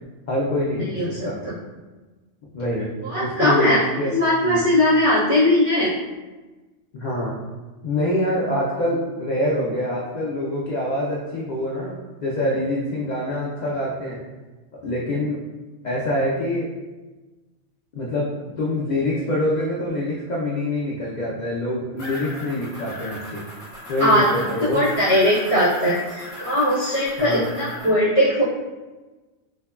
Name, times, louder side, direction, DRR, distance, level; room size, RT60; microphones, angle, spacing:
voice 1, 0.3-1.4 2.5-4.2 4.4-4.6 6.9-7.4 7.8-12.0 12.2-14.2 14.7-15.4 15.8-16.7 17.9-23.4 23.9-24.8 27.2-27.5, left 1 dB, 85° left, -5 dB, 0.4 m, -25 dB
voice 2, 0.9-1.5 3.0-3.8 4.1-5.9 24.0-24.3 24.7-28.4, left 1 dB, 45° right, -13 dB, 1.0 m, -19 dB
sound 1, 22.0-27.9, left 1 dB, 35° left, 0.9 m, -36 dB
3.4 x 2.2 x 2.2 m, 1.2 s
omnidirectional pair, 1.3 m